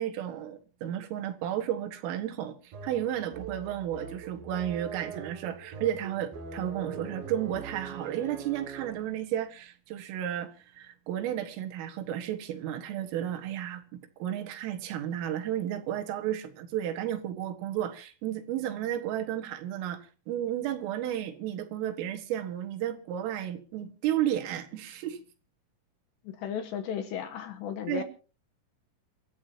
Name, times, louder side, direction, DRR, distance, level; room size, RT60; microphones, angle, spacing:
voice 1, 0.0-25.2 27.9-28.0, right 11 dB, 75° right, 4.1 m, -33 dB
sound 1, 2.7-9.2, right 5 dB, 55° right, 3.2 m, -42 dB
voice 2, 26.2-28.0, left 8 dB, 75° left, 2.8 m, -35 dB
28.0 x 13.5 x 2.9 m
omnidirectional pair, 6.0 m